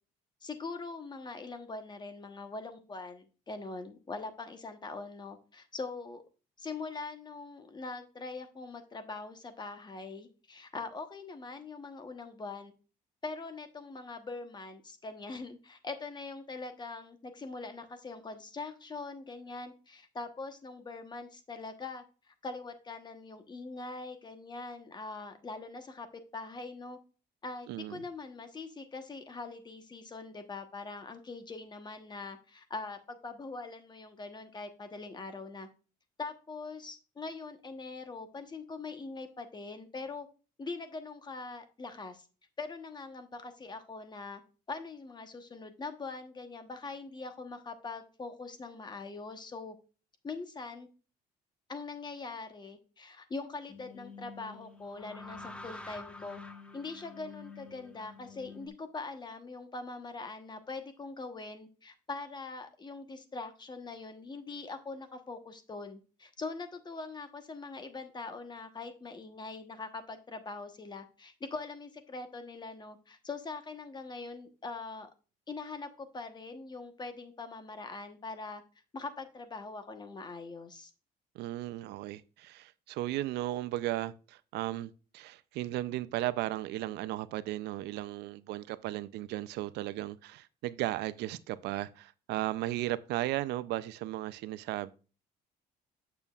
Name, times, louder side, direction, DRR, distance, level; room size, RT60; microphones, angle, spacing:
voice 1, 0.4-6.2 6.6-12.7 13.2-27.0 27.4-35.7 36.2-40.3 40.6-42.2 42.6-44.4 44.7-49.7 50.2-50.9 51.7-56.4 56.7-75.1 75.5-78.6 78.9-80.9, left 3 dB, 25° left, 1.1 m, -42 dB
voice 2, 27.7-28.0 81.3-94.9, right 15 dB, 80° right, 0.5 m, -35 dB
sound 1, 53.7-58.7, left 3 dB, 5° left, 0.9 m, -48 dB
8.9 x 6.9 x 2.4 m
cardioid pair, 110°, 17 cm